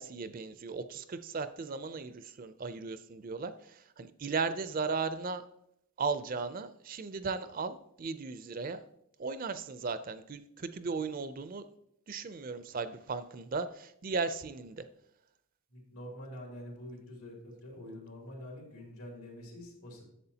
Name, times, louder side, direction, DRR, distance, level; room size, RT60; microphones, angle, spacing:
voice 1, 0.0-5.4 6.0-8.8 9.2-11.7 12.1-14.9, right 4 dB, 40° right, 12 dB, 0.4 m, -36 dB
voice 2, 15.7-20.0, left 1 dB, 80° left, -1 dB, 3.2 m, -46 dB
11.0 x 7.3 x 2.8 m, 0.77 s
head